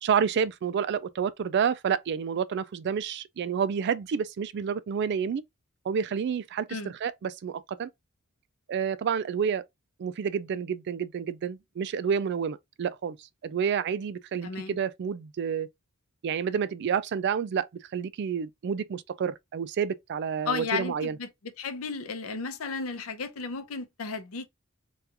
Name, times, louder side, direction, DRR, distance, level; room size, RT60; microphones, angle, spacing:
voice 1, 0.0-5.4 5.9-7.9 8.7-9.6 10.0-13.2 13.4-15.7 16.2-17.7 17.9-21.2, right 7 dB, 55° right, 0.3 m, -29 dB
voice 2, 14.4-14.8 20.5-21.3 21.6-24.5, left 4 dB, 90° left, 0.6 m, -34 dB
2.9 x 2.3 x 3.3 m
head